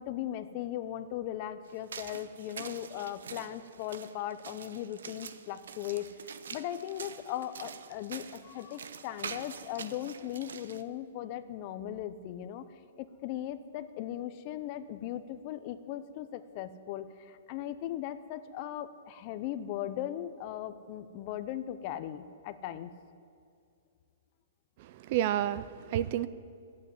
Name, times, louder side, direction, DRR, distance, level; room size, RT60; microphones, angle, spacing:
voice 1, 0.0-6.1 6.5-12.6 13.0-22.9, left 12 dB, 25° left, 12 dB, 0.5 m, -38 dB
sound 1, 1.7-10.8, right 6 dB, 80° right, 0.8 m, -46 dB
voice 2, 24.8-26.3, right 12 dB, 30° right, 15 dB, 0.3 m, -30 dB
13.5 x 8.5 x 9.8 m, 2.4 s
hypercardioid pair, 180°, 0 cm